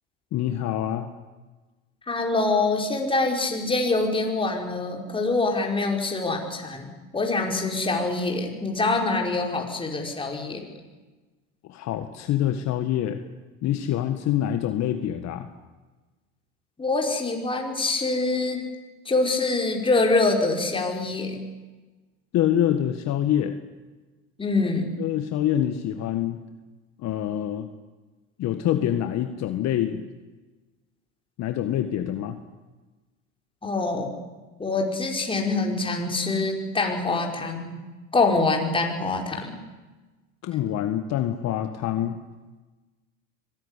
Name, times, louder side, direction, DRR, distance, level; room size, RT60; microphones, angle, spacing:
voice 1, 0.3-1.1 11.6-13.2 13.6-15.5 22.3-23.6 25.0-26.4 27.0-27.7 28.4-30.1 31.4-32.4 40.4-42.2, left 11 dB, 55° left, 7 dB, 1.8 m, -26 dB
voice 2, 2.1-10.7 16.8-18.6 19.1-21.4 24.4-24.9 33.6-34.1 34.6-37.7 38.1-39.6, left 3 dB, 15° left, 1 dB, 5.2 m, -25 dB
25.0 x 19.0 x 10.0 m, 1.2 s
cardioid pair, 125°, 33 cm